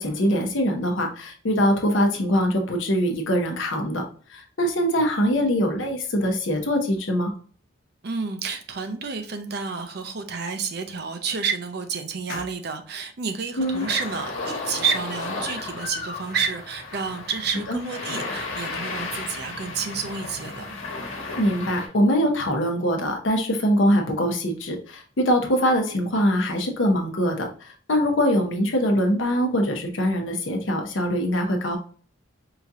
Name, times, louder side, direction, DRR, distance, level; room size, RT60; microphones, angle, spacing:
voice 1, 0.0-4.0 4.3-7.3 12.3-12.4 13.6-13.8 17.7-17.8 21.4-31.8, equal, 70° left, 3 dB, 0.8 m, -23 dB
voice 2, 8.0-20.8, right 5 dB, 50° right, 7 dB, 0.5 m, -30 dB
sound 1, 13.6-21.9, left 3 dB, 90° left, 1.2 m, -34 dB
4.8 x 2.8 x 2.4 m, 0.43 s
head